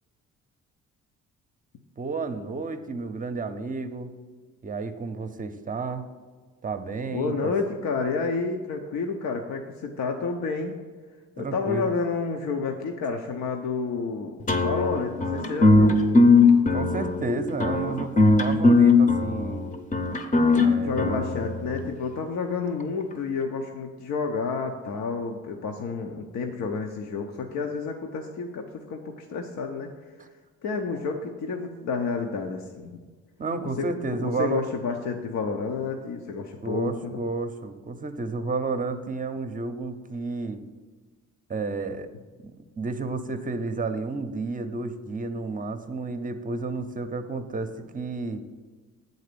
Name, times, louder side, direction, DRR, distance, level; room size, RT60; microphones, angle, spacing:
voice 1, 2.0-4.1 4.6-6.1 6.6-7.5 11.4-11.9 16.7-18.1 18.4-19.7 20.6-21.2 33.4-34.6 36.6-40.6 41.5-42.1 42.4-48.4, right 3 dB, 25° right, 9 dB, 0.7 m, -31 dB
voice 2, 7.1-10.7 11.4-16.2 20.8-29.9 30.6-33.0 33.8-37.2, left 4 dB, 65° left, 3 dB, 0.7 m, -30 dB
sound 1, 14.5-21.9, left 3 dB, 25° left, 0.8 m, -20 dB
7.9 x 4.1 x 6.8 m, 1.4 s
cardioid pair, 90°, 30 cm